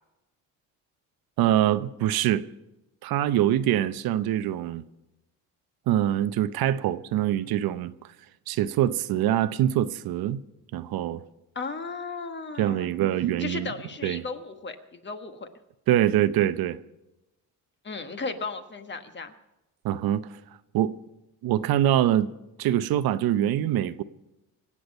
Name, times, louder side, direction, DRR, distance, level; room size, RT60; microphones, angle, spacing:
voice 1, 1.4-2.4 3.0-4.8 5.9-7.9 8.5-10.4 10.7-11.2 12.6-13.7 14.0-14.2 15.9-16.8 19.8-20.4 20.7-21.0 21.4-22.3 22.6-24.0, right 12 dB, 75° right, 0.8 m, -24 dB
voice 2, 11.5-12.9 13.4-15.5 17.8-19.3, left 4 dB, 30° left, 1.4 m, -35 dB
25.0 x 8.7 x 5.3 m
cardioid pair, 135°, 36 cm